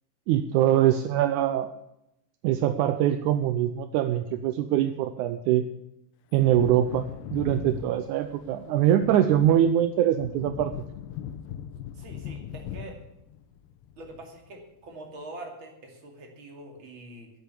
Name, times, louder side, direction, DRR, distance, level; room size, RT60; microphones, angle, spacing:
voice 1, 0.3-1.7 2.4-5.7 6.3-7.1 7.3-10.7, right 11 dB, 80° right, 9 dB, 1.8 m, -23 dB
Wind / Thunder, 6.3-14.6 14.9-15.0, left 9 dB, 80° left, 2.4 m, -39 dB
voice 2, 11.9-13.0 14.0-17.3, right 2 dB, 40° right, 2 dB, 2.9 m, -44 dB
12.0 x 8.1 x 8.3 m, 0.83 s
omnidirectional pair, 4.1 m